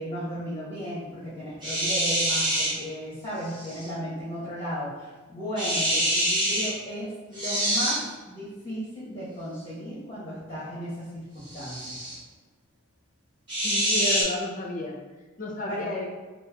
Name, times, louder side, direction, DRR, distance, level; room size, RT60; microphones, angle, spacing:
voice 1, 0.0-12.0 15.7-15.8, equal, 25° left, -10 dB, 1.0 m, -35 dB
sound 1, 1.6-2.7 3.5-3.9 5.6-6.7 7.3-8.0 11.5-12.2 13.5-14.2, equal, 20° right, 1.2 m, -26 dB
voice 2, 13.6-15.0 15.4-16.1, left 2 dB, 40° left, -1 dB, 0.6 m, -32 dB
5.3 x 2.5 x 2.3 m, 1.3 s
head